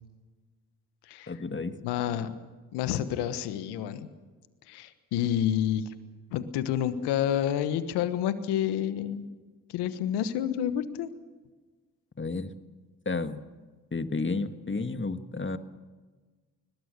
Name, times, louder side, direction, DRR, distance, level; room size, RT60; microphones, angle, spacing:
voice 1, 1.3-1.8 12.2-12.5 13.0-13.4 13.9-15.6, left 3 dB, 30° left, 10 dB, 1.8 m, -31 dB
voice 2, 1.8-2.3 2.7-4.1 4.7-5.9 6.3-9.3 9.7-11.1, left 10 dB, 90° left, 12 dB, 1.3 m, -29 dB
21.5 x 21.0 x 6.7 m, 1.4 s
hypercardioid pair, 40°, 39 cm